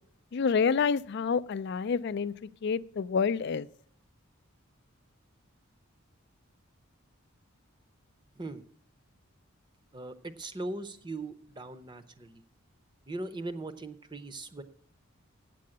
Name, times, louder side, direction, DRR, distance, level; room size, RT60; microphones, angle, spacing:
voice 1, 0.3-3.7, left 5 dB, 55° left, 18 dB, 0.4 m, -28 dB
voice 2, 9.9-12.4 13.1-14.6, right 2 dB, 20° right, 11 dB, 0.6 m, -39 dB
8.4 x 7.7 x 8.5 m, 0.62 s
head